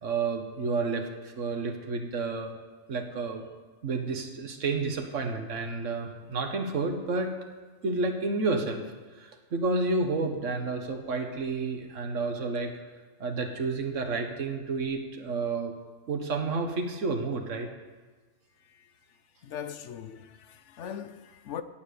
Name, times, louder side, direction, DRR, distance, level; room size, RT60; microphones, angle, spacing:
voice 1, 0.0-2.5 2.9-3.5 3.8-7.3 7.8-8.8 9.2-12.7 13.2-15.7 16.1-17.7, right 3 dB, 75° right, 1.7 m, -30 dB
voice 2, 19.4-21.6, left 8 dB, 70° left, 1.0 m, -40 dB
17.0 x 7.4 x 6.9 m
omnidirectional pair, 1.3 m